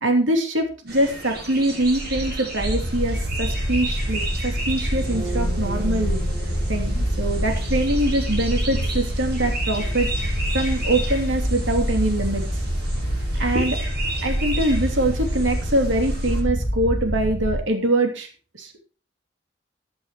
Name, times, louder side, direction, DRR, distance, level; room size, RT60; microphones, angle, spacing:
voice 1, 0.0-6.2 6.7-12.4 13.4-13.8 14.2-18.3 18.6-18.7, right 1 dB, 75° right, 3 dB, 3.0 m, -23 dB
sound 1, 0.9-16.4, right 1 dB, 55° right, 8.0 m, -33 dB
sound 2, 2.6-17.6, equal, 45° left, 2.1 m, -26 dB
sound 3, 4.9-12.7, left 1 dB, 20° right, 5.6 m, -40 dB
14.5 x 11.0 x 3.1 m, 0.37 s
head